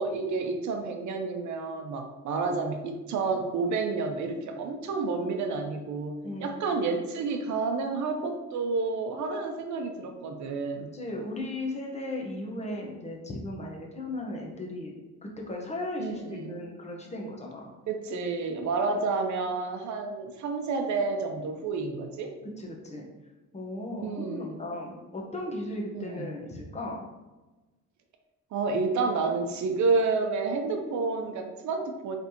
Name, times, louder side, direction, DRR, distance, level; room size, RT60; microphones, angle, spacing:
voice 1, 0.0-10.9 16.0-16.6 17.9-22.3 24.0-24.6 25.9-26.3 28.5-32.2, right 4 dB, 70° right, 5 dB, 0.7 m, -30 dB
voice 2, 10.9-14.9 15.2-17.7 22.4-23.1 23.5-27.0, left 1 dB, 20° left, -1 dB, 1.1 m, -36 dB
4.1 x 3.4 x 2.9 m, 1.1 s
cardioid pair, 90°, 30 cm